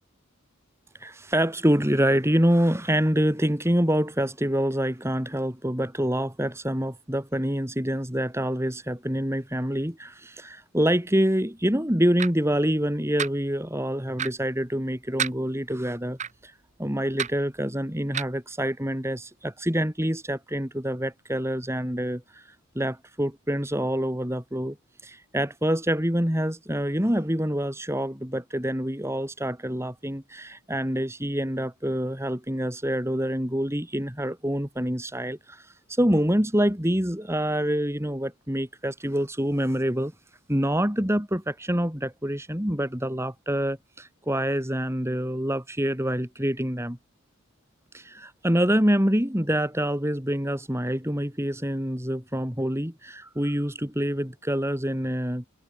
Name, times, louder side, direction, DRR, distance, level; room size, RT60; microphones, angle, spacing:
voice 1, 1.0-16.5 16.8-22.4 22.8-24.8 25.0-40.1 40.5-47.0 47.9-55.5, equal, 10° right, 3.5 m, -26 dB
sound 1, 12.2-12.3 13.2-13.3 14.2-14.3 15.2-15.4 16.2-16.3 17.2-17.3 18.1-18.3, right 8 dB, 35° right, 1.2 m, -28 dB
head